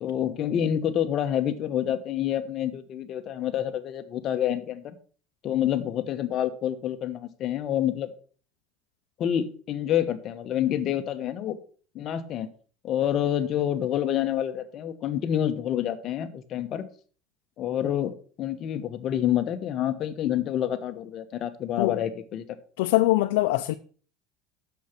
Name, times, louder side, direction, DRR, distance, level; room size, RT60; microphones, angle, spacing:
voice 1, 0.0-4.9 5.4-8.1 9.2-11.6 11.9-12.5 12.8-16.9 17.6-22.4, left 10 dB, 40° left, 1.1 m, -28 dB
voice 2, 22.8-23.7, left 18 dB, 85° left, 0.5 m, -22 dB
8.3 x 7.0 x 6.0 m
cardioid pair, 145°, 0 cm